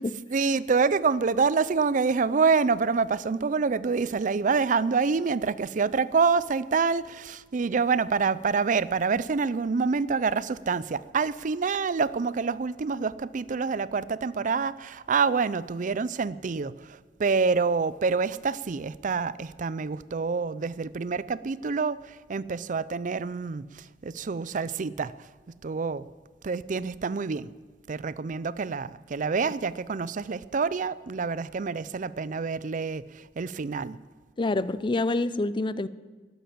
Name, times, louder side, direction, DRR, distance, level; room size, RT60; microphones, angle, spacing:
voice 1, 0.3-25.3 25.6-26.1 26.4-27.5 27.9-34.0, right 5 dB, 50° right, 0.5 m, -27 dB
voice 2, 34.4-35.9, left 2 dB, 30° left, 0.5 m, -27 dB
12.5 x 11.5 x 8.5 m
head